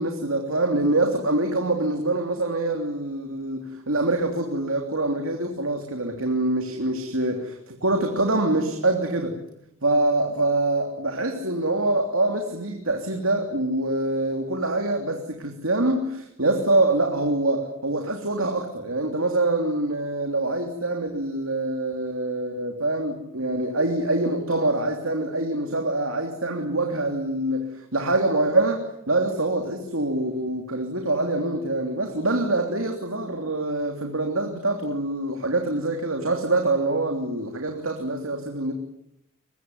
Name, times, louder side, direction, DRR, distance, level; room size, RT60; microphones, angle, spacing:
voice 1, 0.0-9.4 9.8-38.7, right 2 dB, 70° right, 3 dB, 3.2 m, -25 dB
23.5 x 23.0 x 9.8 m, 0.77 s
head